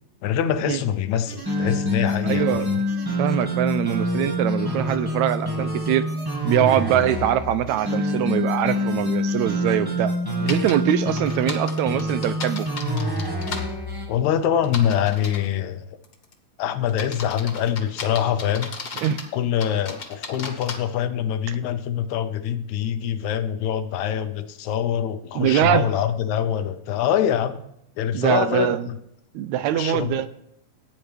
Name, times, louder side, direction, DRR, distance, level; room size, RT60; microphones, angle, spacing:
voice 1, 0.2-2.8 14.1-15.9 16.6-18.7 19.3-27.6 28.0-28.9 29.7-30.2, left 9 dB, 80° left, 10 dB, 2.0 m, -24 dB
sound 1, 1.3-14.1, left 1 dB, 30° right, 0.3 m, -26 dB
voice 2, 2.2-2.7 3.2-6.1 6.4-10.1 10.4-12.7 19.0-19.2 21.5-21.6 25.4-25.9 28.1-28.9 29.3-30.3, right 11 dB, 80° right, 12 dB, 1.8 m, -23 dB
sound 2, 10.5-10.7 11.2-13.6 14.6-15.5 16.0-16.3 16.9-19.3 19.6-20.8, left 4 dB, 45° left, 1.5 m, -34 dB
16.0 x 9.4 x 3.4 m, 0.77 s
omnidirectional pair, 3.4 m